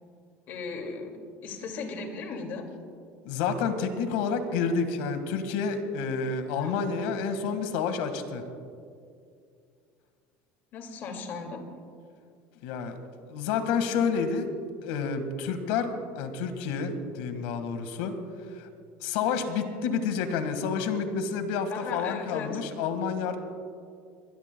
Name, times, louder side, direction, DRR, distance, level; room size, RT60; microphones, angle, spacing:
voice 1, 0.5-1.2 1.4-2.7 6.5-6.8 10.7-11.6 21.7-22.6, left 4 dB, 45° left, 4 dB, 2.3 m, -37 dB
voice 2, 3.2-8.4 12.6-13.0 13.3-14.5 14.8-18.2 18.6-18.7 19.0-23.4, left 5 dB, 80° left, 8 dB, 1.7 m, -29 dB
23.5 x 20.5 x 2.3 m, 2.3 s
cardioid pair, 155°, 5 cm